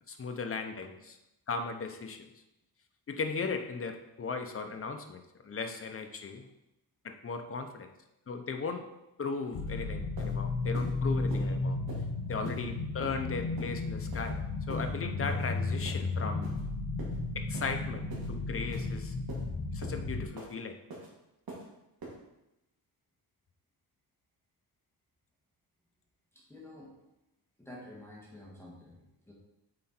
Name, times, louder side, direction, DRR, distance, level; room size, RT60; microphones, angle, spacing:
voice 1, 0.1-1.2 1.5-2.3 3.1-6.5 7.0-7.9 8.3-8.8 9.2-11.8 12.3-14.4 14.7-16.5 17.3-19.1 19.7-20.8, left 4 dB, 30° left, 6 dB, 0.7 m, -37 dB
sound 1, 9.5-20.3, left 3 dB, 90° left, 1.0 m, -34 dB
sound 2, 9.7-9.8 10.2-10.3 10.7-10.9 11.3-11.4 11.9-12.0 12.4-12.6 13.0-13.2 13.6-13.7 14.1-14.3 14.7-14.8 15.3-15.4 15.8-16.0 16.4-16.6 17.0-17.2 17.5-17.7 18.1-18.3 18.7-18.9 19.3-19.4 19.8-20.0 20.4-20.5 20.9-21.1 21.5-21.6 22.0-22.1, right 3 dB, 55° right, 2.3 m, -44 dB
voice 2, 26.3-26.9 27.6-29.3, left 1 dB, 5° left, -4 dB, 1.7 m, -50 dB
7.7 x 4.4 x 4.4 m, 0.91 s
wide cardioid pair, 145°, 43 cm